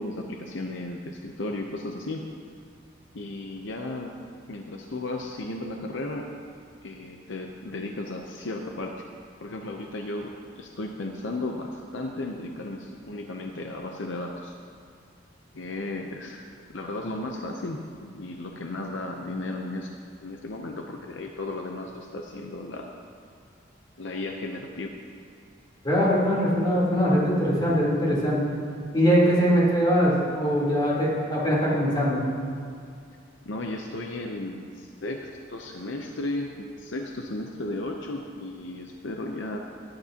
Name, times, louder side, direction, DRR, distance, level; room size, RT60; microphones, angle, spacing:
voice 1, 0.0-2.3 3.1-4.2 4.5-6.3 6.8-8.9 9.4-14.6 15.5-19.9 20.2-23.0 24.0-24.9 33.5-39.6, left 2 dB, 70° left, 2 dB, 0.7 m, -34 dB
voice 2, 25.8-28.4 28.9-32.2, equal, 25° left, -7 dB, 3.6 m, -22 dB
19.0 x 10.5 x 2.9 m, 2.3 s
head